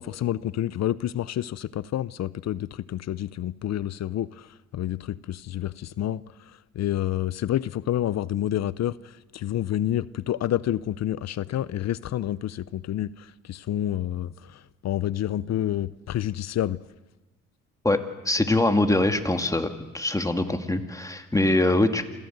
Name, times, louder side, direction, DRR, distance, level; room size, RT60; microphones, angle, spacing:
voice 1, 0.0-4.5 4.7-6.2 6.7-9.0 9.3-16.8, left 12 dB, 60° left, 0.7 m, -28 dB
voice 2, 17.8-19.7 19.9-22.1, left 2 dB, 10° left, 2.1 m, -23 dB
27.0 x 16.0 x 8.0 m
cardioid pair, 90°, 30 cm